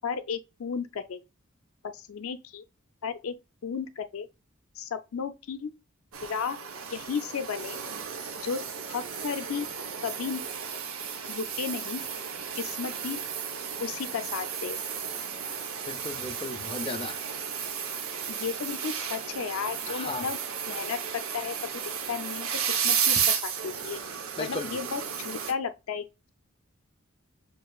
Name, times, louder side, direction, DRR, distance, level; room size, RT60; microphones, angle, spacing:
voice 1, 0.0-1.2 1.8-2.6 3.0-3.3 3.6-4.3 4.7-5.7 6.2-6.6 6.9-7.8 8.4-9.7 10.0-10.4 11.3-12.0 12.5-13.2 13.8-14.8 18.3-20.4 20.7-21.6 22.1-24.0 24.4-26.3, left 6 dB, 90° left, 0.4 m, -34 dB
sound 1, 6.1-25.5, right 7 dB, 90° right, 0.7 m, -33 dB
voice 2, 15.9-17.2 19.9-20.3 24.4-24.7, left 3 dB, 25° left, 0.5 m, -35 dB
6.7 x 2.4 x 2.3 m
head